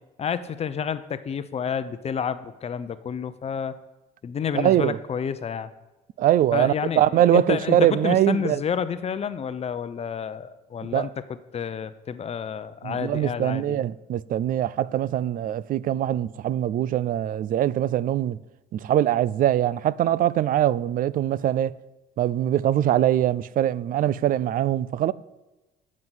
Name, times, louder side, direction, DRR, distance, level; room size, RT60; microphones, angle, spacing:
voice 1, 0.2-3.7 4.2-5.7 6.5-11.1 11.5-13.8, left 7 dB, 40° left, 0.8 m, -29 dB
voice 2, 4.5-5.0 6.2-8.6 10.9-11.1 12.8-18.4 18.7-21.8 22.2-25.1, right 12 dB, 55° right, 0.5 m, -22 dB
9.6 x 7.6 x 8.0 m
cardioid pair, 110°, 17 cm